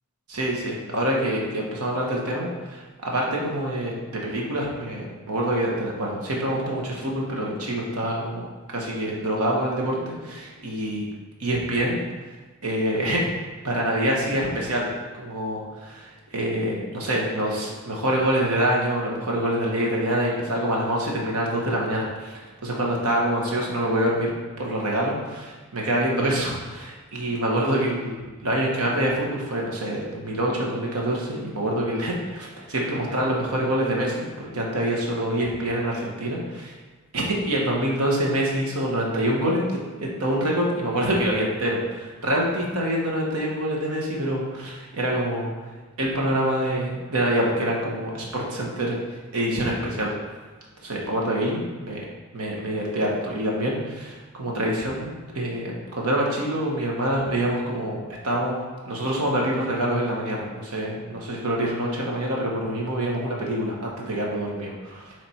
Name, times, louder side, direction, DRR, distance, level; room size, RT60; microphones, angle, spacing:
voice 1, 0.3-8.5 8.7-11.1 11.4-12.0 12.6-13.2 13.6-24.3 24.6-36.7 37.1-39.6 40.0-45.5 46.0-49.0 49.3-50.1 50.8-52.0 52.3-65.1, right 1 dB, 75° right, -2 dB, 1.3 m, -26 dB
7.5 x 3.4 x 4.4 m, 1.3 s
head